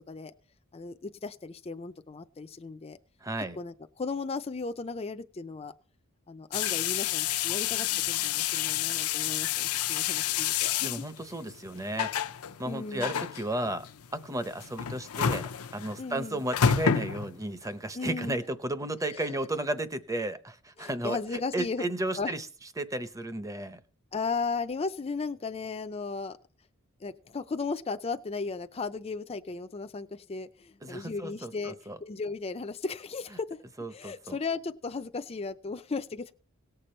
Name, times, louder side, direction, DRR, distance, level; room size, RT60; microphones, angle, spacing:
voice 1, 0.7-3.0 3.6-5.7 6.3-11.4 12.7-13.1 16.0-16.4 17.9-18.4 19.1-19.3 20.8-21.8 22.2-22.3 24.1-26.4 27.0-33.6 33.9-36.3, left 4 dB, 25° left, 0.5 m, -36 dB
voice 2, 3.2-3.6 10.8-12.1 12.6-13.9 14.1-22.5 22.8-23.8 30.8-32.0 33.8-34.4, right 1 dB, 15° right, 0.7 m, -34 dB
sound 1, 6.5-17.7, left 9 dB, 85° left, 0.6 m, -30 dB
18.0 x 6.8 x 4.4 m
head